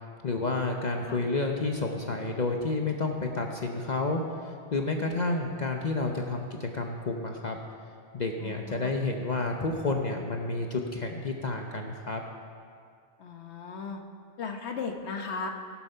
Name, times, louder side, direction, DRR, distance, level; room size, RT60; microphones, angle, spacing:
voice 1, 0.2-4.2 4.7-7.6 8.1-12.2, left 3 dB, 45° left, 2 dB, 0.9 m, -30 dB
voice 2, 8.4-8.9 13.2-14.0 14.4-15.5, left 5 dB, 75° left, 4 dB, 1.3 m, -36 dB
17.5 x 7.2 x 5.6 m, 2.2 s
omnidirectional pair, 1.1 m